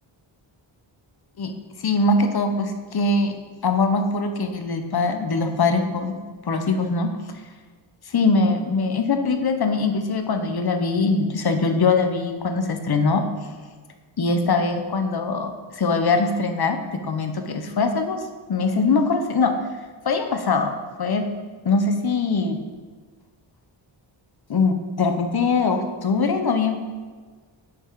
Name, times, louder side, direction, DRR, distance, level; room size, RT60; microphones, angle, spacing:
voice 1, 1.8-3.3 3.6-6.2 6.5-7.1 8.1-13.2 14.2-18.2 18.5-19.5 20.0-21.2 21.6-22.6 24.5-26.8, left 3 dB, 50° left, 6 dB, 1.0 m, -22 dB
9.6 x 5.4 x 4.8 m, 1.5 s
wide cardioid pair, 95°, 49 cm